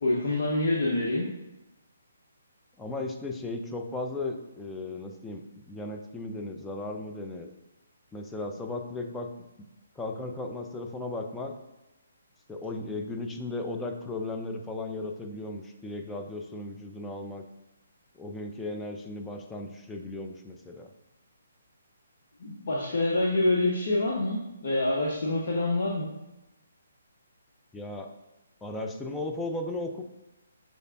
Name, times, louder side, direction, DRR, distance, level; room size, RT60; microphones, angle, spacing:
voice 1, 0.0-1.3 22.4-26.1, left 2 dB, 55° left, -3 dB, 0.7 m, -26 dB
voice 2, 2.8-7.5 8.1-9.3 10.0-11.5 12.5-17.4 18.1-20.9 27.7-28.1 28.6-30.0, left 2 dB, 10° left, 3 dB, 0.4 m, -36 dB
6.1 x 3.3 x 2.4 m, 0.97 s
figure-of-eight pair, 140°, 0 cm